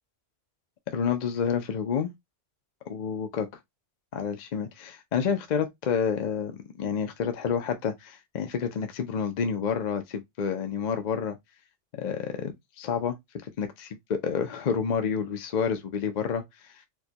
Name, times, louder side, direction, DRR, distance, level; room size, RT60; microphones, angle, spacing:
voice 1, 0.9-2.1 2.9-3.5 4.1-11.4 12.0-13.2 13.4-16.8, left 7 dB, 55° left, 0.5 m, -29 dB
4.4 x 2.2 x 2.8 m
omnidirectional pair, 1.2 m